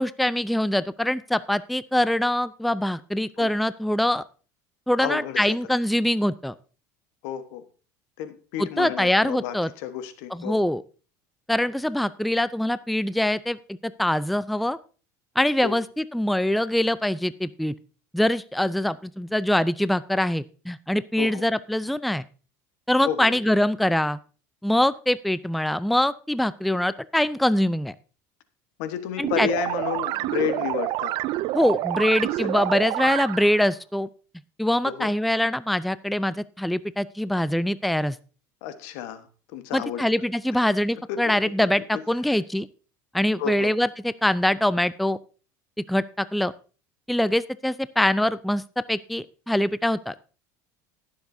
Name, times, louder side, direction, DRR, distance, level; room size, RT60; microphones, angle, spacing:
voice 1, 0.0-4.2 4.9-6.5 8.6-9.7 10.3-10.8 11.5-14.8 15.4-17.7 18.1-22.2 22.9-24.2 24.6-27.9 29.2-29.5 31.5-34.1 34.6-38.2 39.7-42.7 43.1-45.2 45.9-46.5 47.1-48.6 48.9-50.1, left 1 dB, ahead, 17 dB, 0.4 m, -23 dB
voice 2, 5.0-5.5 7.2-7.6 8.2-10.6 15.6-15.8 21.2-21.4 23.0-23.4 28.8-31.1 31.9-32.0 32.4-32.5 34.8-35.1 38.6-40.0 40.5-40.6 41.1-41.3 41.9-42.0 43.4-43.7, left 10 dB, 75° left, 10 dB, 1.3 m, -31 dB
sound 1, 29.2-33.6, right 16 dB, 60° right, 0.4 m, -28 dB
19.5 x 7.2 x 2.7 m, 0.37 s
supercardioid pair, 90°, 10 cm